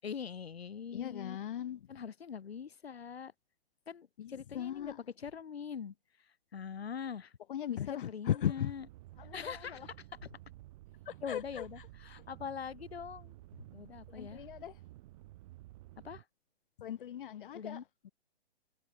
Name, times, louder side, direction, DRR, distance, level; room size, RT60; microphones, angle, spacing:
voice 1, 0.0-1.4 1.9-3.3 3.9-5.9 6.5-7.3 7.8-8.9 9.3-10.4 11.2-14.4 16.0-16.2 17.5-17.8, left 7 dB, 75° left, 7.1 m, -43 dB
voice 2, 0.9-1.8 4.2-5.0 7.5-8.7 9.2-9.9 11.0-12.2 14.1-14.8 16.8-18.1, left 10 dB, 55° left, 3.4 m, -38 dB
sound 1, 8.5-16.2, right 17 dB, 35° right, 2.4 m, -53 dB
hypercardioid pair, 150°, 31 cm